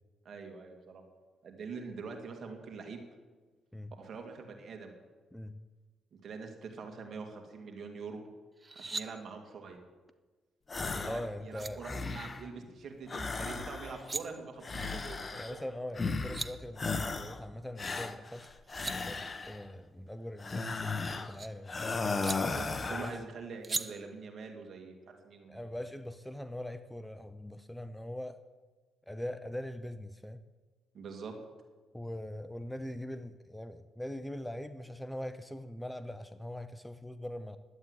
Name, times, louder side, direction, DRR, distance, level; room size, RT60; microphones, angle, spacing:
voice 1, 0.2-1.0 1.4-3.0 4.0-4.9 6.1-8.2 8.8-9.8 10.9-15.7 22.3-25.6 30.9-31.3, right 5 dB, 55° right, 4 dB, 2.5 m, -44 dB
sound 1, 8.6-9.1 11.1-11.2 11.5-11.7 13.8-14.2 15.9-16.0 16.2-16.5 18.4-19.0 20.5-21.5 22.2-22.4 23.6-23.8, right 3 dB, 30° right, 0.8 m, -38 dB
sound 2, 10.7-11.3 11.6-12.5 13.1-14.1 14.6-15.6 16.0-16.5 16.8-17.4 17.8-19.6 20.4-21.3 21.7-23.2, left 4 dB, 30° left, 1.0 m, -36 dB
voice 2, 11.0-11.8 15.4-18.6 19.0-21.8 22.9-23.2 25.5-28.4 29.1-30.4 31.9-37.6, left 1 dB, 5° left, 11 dB, 0.7 m, -42 dB
11.5 x 8.9 x 9.8 m, 1.3 s
cardioid pair, 90°, 0 cm